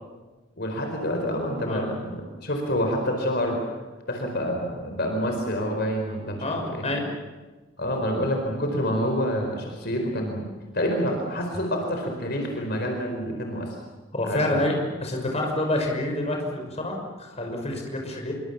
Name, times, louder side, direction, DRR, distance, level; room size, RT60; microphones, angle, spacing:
voice 1, 0.6-3.6 4.1-6.9 7.8-10.4 10.7-13.7 14.2-14.6, equal, 55° left, 2 dB, 4.6 m, -27 dB
voice 2, 6.4-7.0 14.1-18.3, left 1 dB, 35° left, 2 dB, 5.8 m, -28 dB
27.0 x 24.5 x 7.2 m, 1.2 s
head